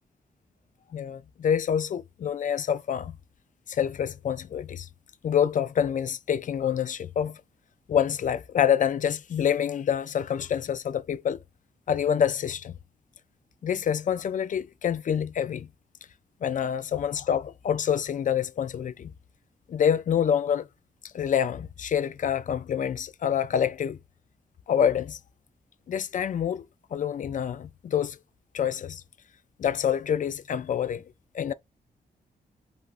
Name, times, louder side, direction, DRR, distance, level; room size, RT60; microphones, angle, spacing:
voice 1, 0.9-3.2 3.7-4.9 5.2-7.4 7.9-11.4 11.9-12.8 13.6-15.7 16.4-19.1 19.7-20.7 21.0-24.0 24.7-25.2 25.9-26.6 26.9-28.2 28.5-29.0 29.6-31.0 31.3-31.5, left 8 dB, 55° left, 0.4 m, -27 dB
3.3 x 2.4 x 2.4 m
cardioid pair, 90°, 16 cm